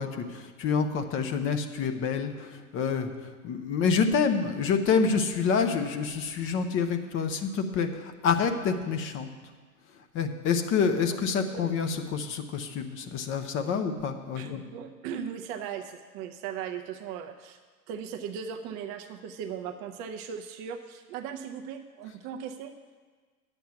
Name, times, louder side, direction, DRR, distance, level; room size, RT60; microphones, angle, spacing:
voice 1, 0.0-3.1 3.4-9.3 10.1-14.6, left 5 dB, 25° left, 7 dB, 0.7 m, -27 dB
voice 2, 11.1-11.6 14.4-17.6 17.9-22.7, right 8 dB, 30° right, 6 dB, 0.6 m, -38 dB
10.0 x 8.0 x 5.8 m, 1.5 s
hypercardioid pair, 105°, 48 cm